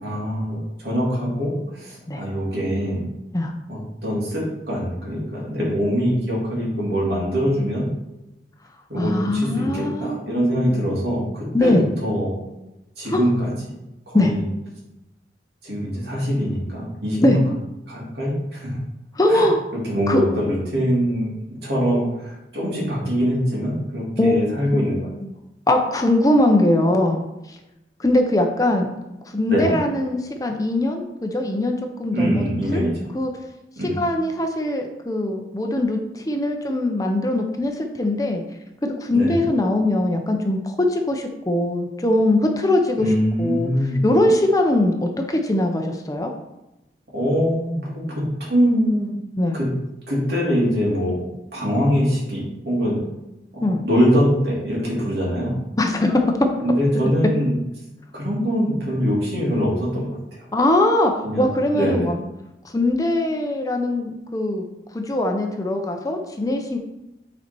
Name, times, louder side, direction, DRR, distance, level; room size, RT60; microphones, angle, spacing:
voice 1, 0.0-3.0 3.7-7.9 8.9-12.3 13.0-13.7 14.1-14.4 15.6-17.4 17.9-18.8 19.3-19.5 19.9-25.0 29.5-29.7 32.1-33.0 33.8-34.0 39.1-39.4 42.9-44.0 47.1-49.1 49.5-49.7 50.1-51.3 51.5-53.0 53.5-55.6 56.6-57.5 58.1-60.4 61.2-62.1, equal, 70° right, -4 dB, 2.9 m, -23 dB
voice 2, 9.0-10.2 10.5-10.8 11.5-11.9 13.1-13.3 14.1-14.3 17.2-17.4 19.2-19.6 20.1-20.2 24.2-24.8 25.2-25.3 25.7-27.2 27.5-27.6 28.0-28.9 29.3-32.5 32.7-32.8 33.1-33.3 34.0-38.4 38.8-43.1 43.4-43.7 44.0-46.3 49.4-49.6 53.6-53.8 55.8-56.2 60.5-62.2 62.7-64.6 64.9-66.8, left 1 dB, 20° left, 4 dB, 0.6 m, -21 dB
8.7 x 4.3 x 4.5 m, 0.96 s
head